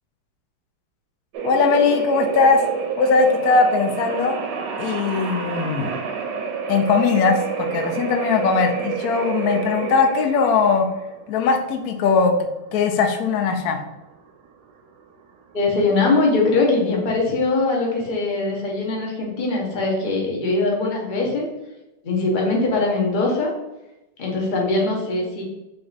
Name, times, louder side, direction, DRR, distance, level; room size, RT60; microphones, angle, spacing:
sound 1, 1.3-15.9, right 6 dB, 70° right, 1.1 m, -29 dB
voice 1, 1.4-2.6 3.0-4.4 4.8-5.9 6.7-10.9 11.3-12.3 12.7-13.8, left 5 dB, 80° left, 4 dB, 0.8 m, -19 dB
voice 2, 15.5-21.4 22.0-23.5 24.2-25.4, left 3 dB, 45° left, -1 dB, 0.6 m, -21 dB
3.6 x 3.4 x 4.0 m, 0.97 s
omnidirectional pair, 2.3 m